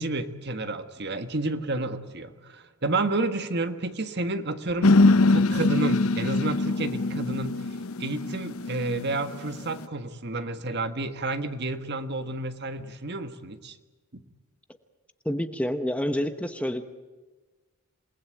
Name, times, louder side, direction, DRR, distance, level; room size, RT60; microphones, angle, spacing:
voice 1, 0.0-4.9 5.3-7.6 8.0-13.8 14.1-14.2, right 2 dB, 50° right, 9 dB, 1.6 m, -30 dB
sound 1, 4.8-9.8, left 2 dB, 70° left, 0.9 m, -23 dB
voice 2, 15.2-16.8, equal, 5° left, 8 dB, 0.9 m, -28 dB
28.0 x 19.5 x 9.3 m, 1.3 s
head